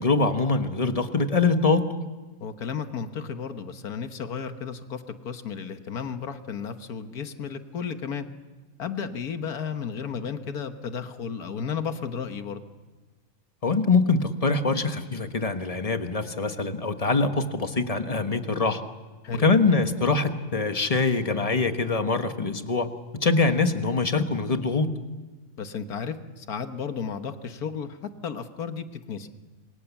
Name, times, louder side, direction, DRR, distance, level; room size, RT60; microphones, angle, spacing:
voice 1, 0.0-1.9 13.6-18.8 19.4-22.9 23.2-24.9, left 3 dB, 25° left, 7 dB, 1.3 m, -23 dB
voice 2, 2.4-8.3 8.8-12.6 19.2-19.6 25.6-29.3, left 6 dB, 90° left, 8 dB, 1.8 m, -33 dB
27.5 x 23.0 x 7.2 m, 1.2 s
omnidirectional pair, 1.5 m